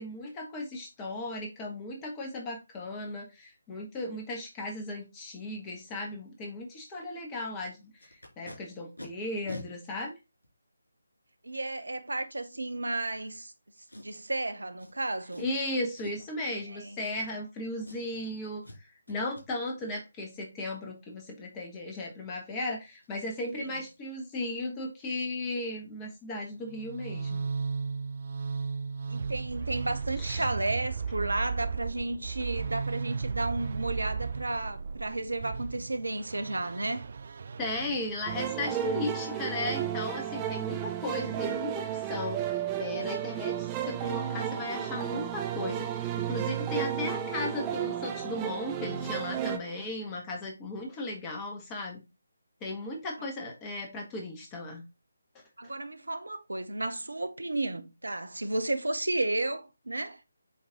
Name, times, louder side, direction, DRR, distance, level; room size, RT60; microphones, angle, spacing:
voice 1, 0.0-10.1 15.4-27.5 30.2-30.5 37.6-52.0 52.6-54.8, left 2 dB, 15° left, 1.5 m, -36 dB
Packing tape duct tape, 8.0-8.6 9.0-9.1 9.5-9.7 10.4-10.5 13.9-14.3 14.8-14.9 15.3-15.6 15.9-16.3 17.0-17.5 17.8-18.2 18.6-18.8 19.1-19.4 22.5-22.6 22.9-23.1 23.4-23.6 23.8-24.1 24.4-24.5, left 1 dB, 85° left, 3.5 m, -45 dB
voice 2, 11.4-13.5 14.0-15.5 16.7-17.0 23.6-23.7 29.1-37.1 55.6-60.2, right 2 dB, 70° right, 0.9 m, -33 dB
sound 1, 26.6-38.5, right 5 dB, 45° right, 0.3 m, -35 dB
sound 2, 38.3-49.6, right 10 dB, 15° right, 0.7 m, -33 dB
8.2 x 3.1 x 3.7 m
figure-of-eight pair, 150°, 0 cm